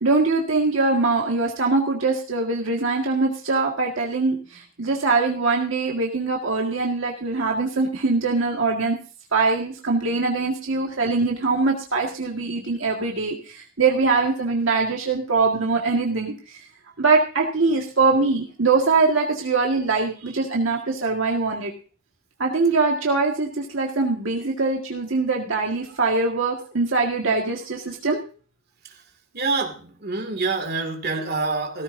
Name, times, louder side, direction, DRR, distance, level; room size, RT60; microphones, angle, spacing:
voice 1, 0.0-9.0 9.3-16.6 17.0-21.7 22.4-28.2, right 3 dB, 75° right, 0 dB, 1.8 m, -22 dB
voice 2, 29.3-31.8, right 3 dB, 50° right, 4 dB, 2.4 m, -26 dB
17.0 x 14.5 x 2.7 m, 0.38 s
head